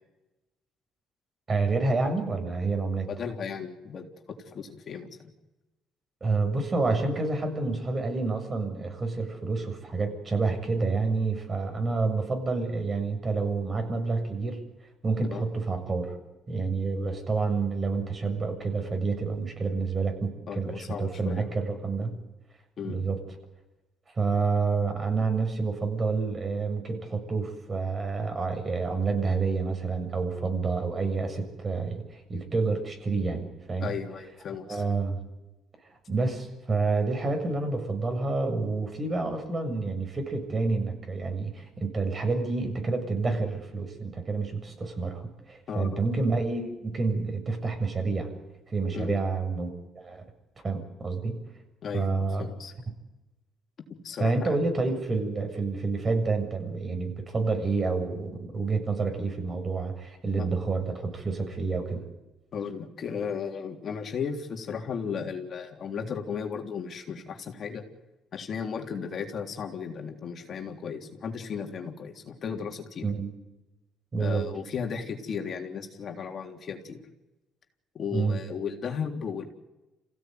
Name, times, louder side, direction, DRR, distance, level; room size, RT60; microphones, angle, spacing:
voice 1, 1.5-3.1 6.2-14.6 15.0-16.2 16.5-22.2 22.8-23.2 24.1-33.9 34.7-35.2 36.1-48.3 48.7-50.2 50.6-51.4 51.9-52.5 54.2-62.0 73.0-73.3 74.1-74.5 78.1-78.4, right 3 dB, 35° right, 6 dB, 7.2 m, -28 dB
voice 2, 3.1-5.3 15.3-15.4 20.5-21.5 22.8-23.1 33.8-34.8 45.7-46.0 48.9-49.2 51.8-52.7 53.9-54.4 60.4-60.5 62.5-67.8 68.3-73.1 74.2-77.0 77.9-79.4, left 6 dB, 55° left, 3 dB, 3.5 m, -35 dB
27.5 x 16.5 x 9.5 m, 1.0 s
supercardioid pair, 70°, 0 cm